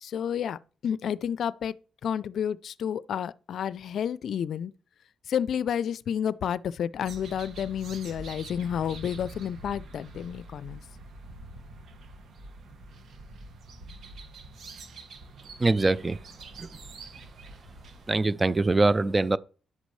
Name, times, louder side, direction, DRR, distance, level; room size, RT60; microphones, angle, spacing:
voice 1, 0.0-1.8 2.0-4.7 5.3-10.8, left 8 dB, 65° left, 0.4 m, -30 dB
sound 1, 7.0-18.2, right 2 dB, 65° right, 2.0 m, -45 dB
voice 2, 15.6-16.2 16.6-16.7 18.1-19.4, right 2 dB, 20° right, 0.5 m, -23 dB
11.0 x 8.1 x 3.2 m
cardioid pair, 90°, 0 cm